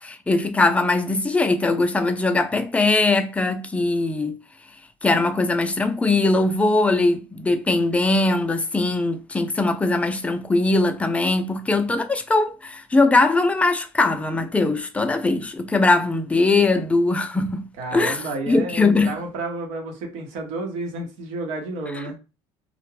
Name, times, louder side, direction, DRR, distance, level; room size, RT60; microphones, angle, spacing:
voice 1, 0.0-4.4 5.0-18.2 18.5-19.1, left 2 dB, 10° left, 0.4 m, -21 dB
voice 2, 17.8-22.2, right 2 dB, 80° right, 0.9 m, -31 dB
2.4 x 2.1 x 3.1 m
supercardioid pair, 95°, 11 cm